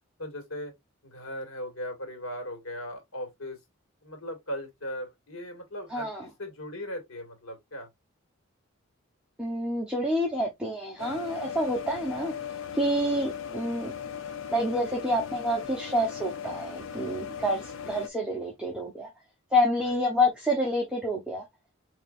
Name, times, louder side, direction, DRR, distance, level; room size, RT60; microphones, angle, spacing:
voice 1, 0.2-0.7 1.0-3.6 4.0-7.9 19.8-20.0, equal, 85° left, 1.9 m, -38 dB
voice 2, 5.9-6.2 9.4-12.3 12.7-13.9 14.5-19.1 19.5-21.4, equal, 5° right, 0.9 m, -28 dB
sound 1, 11.0-18.1, left 8 dB, 70° left, 0.6 m, -38 dB
5.2 x 3.0 x 2.5 m
head